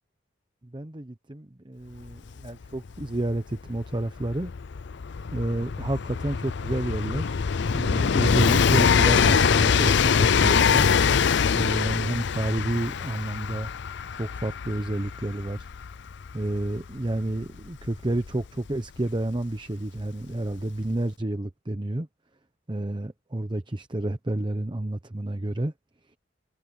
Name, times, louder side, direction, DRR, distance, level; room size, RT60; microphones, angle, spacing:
voice 1, 0.7-4.5 5.3-7.4 7.7-10.9 11.5-13.7 14.1-15.7 16.3-22.1 22.7-25.7, right 1 dB, 25° right, 0.9 m, -30 dB
Train, 2.1-2.2 2.4-19.0 20.0-20.1, left 6 dB, 65° left, 0.5 m, -24 dB
head